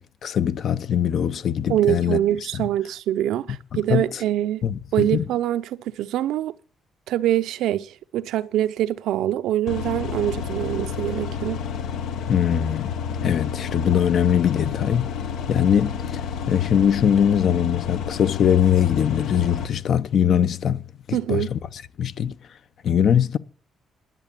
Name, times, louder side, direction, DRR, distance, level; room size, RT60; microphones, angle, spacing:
voice 1, 0.0-2.2 3.7-4.2 4.6-5.3 12.3-12.9 13.2-15.1 15.5-20.8 21.1-22.4 22.8-23.4, left 9 dB, 60° left, 0.8 m, -22 dB
voice 2, 1.7-4.6 4.9-6.5 7.1-11.6 21.1-21.5, right 12 dB, 85° right, 0.7 m, -24 dB
sound 1, 9.7-19.7, left 7 dB, 85° left, 1.1 m, -30 dB
11.0 x 7.4 x 8.8 m
cardioid pair, 90°, 0 cm